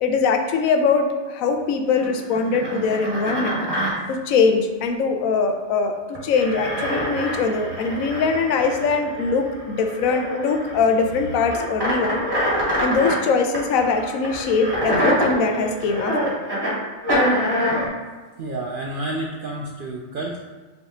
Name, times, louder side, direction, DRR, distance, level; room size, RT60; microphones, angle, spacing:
voice 1, 0.0-3.6 4.1-6.0 6.2-12.2 12.8-16.4, left 4 dB, 85° left, 5 dB, 1.0 m, -22 dB
sound 1, 1.9-3.9 6.1-13.2 13.5-16.8 17.0-17.9, equal, 20° right, 1.2 m, -25 dB
voice 2, 18.4-20.4, right 2 dB, 70° right, -1 dB, 0.5 m, -29 dB
5.5 x 3.2 x 2.9 m, 1.4 s
omnidirectional pair, 1.4 m